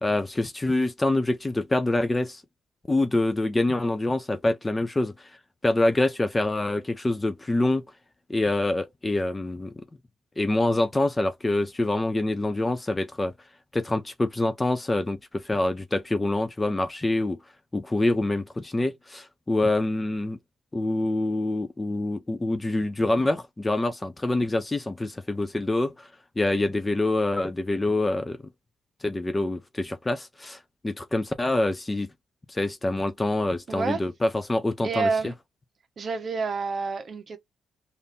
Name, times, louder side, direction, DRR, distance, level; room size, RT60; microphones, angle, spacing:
voice 1, 0.0-2.4 2.9-5.1 5.6-7.8 8.3-9.7 10.4-13.3 13.7-17.4 17.7-20.4 20.7-26.1 26.4-28.4 29.0-30.6 30.8-32.1 32.5-35.1, left 2 dB, 20° left, 0.5 m, -26 dB
voice 2, 33.7-34.0 34.8-35.3 36.0-37.4, right 4 dB, 45° right, 0.9 m, -28 dB
3.6 x 2.5 x 2.6 m
cardioid pair, 90°, 0 cm